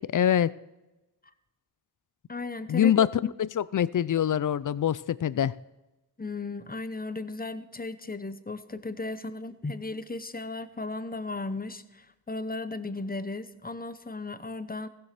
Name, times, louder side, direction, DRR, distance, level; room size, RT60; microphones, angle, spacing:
voice 1, 0.1-0.5 2.7-3.1 3.4-5.5, left 10 dB, 45° left, 19 dB, 0.5 m, -24 dB
voice 2, 2.3-3.3 6.2-14.9, left 3 dB, 20° left, 13 dB, 0.8 m, -36 dB
15.0 x 6.7 x 5.9 m, 1.0 s
cardioid pair, 50°, 47 cm